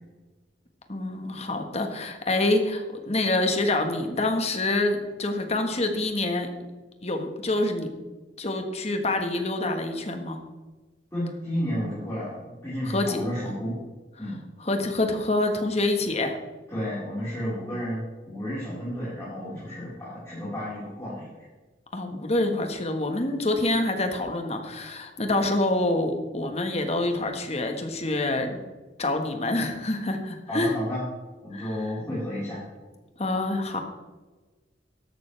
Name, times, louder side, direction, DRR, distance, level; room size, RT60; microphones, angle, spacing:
voice 1, 0.9-6.5 7.0-7.9 8.4-10.4 12.8-13.2 14.2-14.3 14.6-16.4 21.9-28.6 29.0-30.7 31.5-31.9 33.2-33.8, left 2 dB, 35° left, 5 dB, 1.5 m, -26 dB
voice 2, 11.1-13.8 14.2-14.4 16.7-21.3 30.5-31.0 31.4-32.6, equal, 15° left, -11 dB, 4.5 m, -32 dB
13.5 x 11.5 x 3.4 m, 1.2 s
head